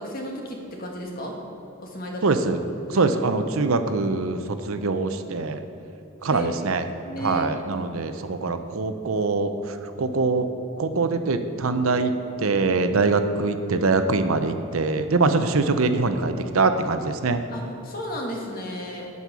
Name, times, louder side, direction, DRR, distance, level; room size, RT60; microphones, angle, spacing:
voice 1, 0.0-1.3 1.8-2.4 2.9-3.1 6.3-6.5 7.0-7.7 12.9-13.2 17.5-19.1, equal, 45° left, 0 dB, 1.6 m, -33 dB
voice 2, 2.2-2.6 2.9-5.6 6.2-6.9 7.2-10.5 10.8-12.1 12.4-17.4, right 3 dB, 80° right, 8 dB, 0.7 m, -23 dB
8.5 x 8.1 x 6.2 m, 2.9 s
head